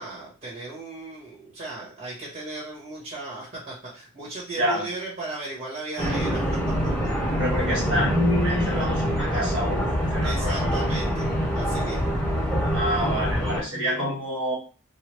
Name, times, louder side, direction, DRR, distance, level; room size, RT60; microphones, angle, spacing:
voice 1, 0.0-6.5 10.2-12.1, right 2 dB, 35° right, -5 dB, 1.2 m, -36 dB
sound 1, 6.0-13.6, equal, 5° left, 1.0 m, -25 dB
voice 2, 7.4-10.7 12.7-14.6, equal, 60° right, -4 dB, 1.5 m, -27 dB
3.2 x 2.3 x 3.1 m, 0.34 s
head